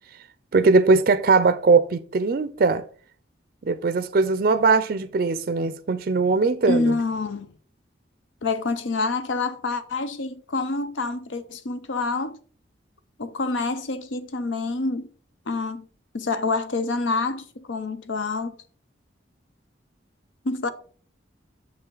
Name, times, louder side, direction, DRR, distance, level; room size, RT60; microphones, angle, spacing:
voice 1, 0.5-2.8 3.6-7.0, right 4 dB, 50° right, 0.4 m, -20 dB
voice 2, 6.7-7.5 8.4-12.4 13.2-15.1 15.5-15.9 16.1-18.6 20.4-20.7, left 3 dB, 85° left, 0.7 m, -27 dB
6.6 x 5.5 x 3.8 m
head